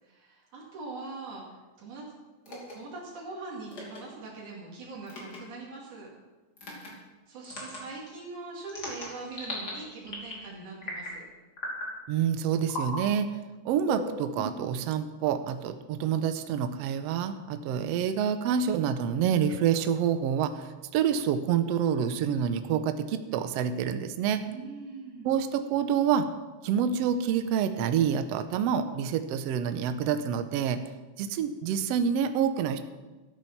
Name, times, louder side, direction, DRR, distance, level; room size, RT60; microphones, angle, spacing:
voice 1, 0.0-1.4 1.8-2.1 2.5-6.1 7.3-11.3 24.5-25.3, right 3 dB, 90° right, -4 dB, 3.8 m, -42 dB
sound 1, 2.4-2.7 3.7-4.0 5.1-5.4 6.6-6.9 7.4-7.8 8.7-9.7 10.1-10.4 10.8-11.2 11.6-11.9 12.7-13.0 13.8-14.7, left 1 dB, 35° left, 3.1 m, -37 dB
voice 2, 12.1-13.3 13.6-20.6 20.9-24.4 25.2-26.3 26.6-30.8 31.2-32.8, right 8 dB, 70° right, 9 dB, 1.7 m, -27 dB
13.5 x 9.4 x 5.8 m, 1.2 s
omnidirectional pair, 3.4 m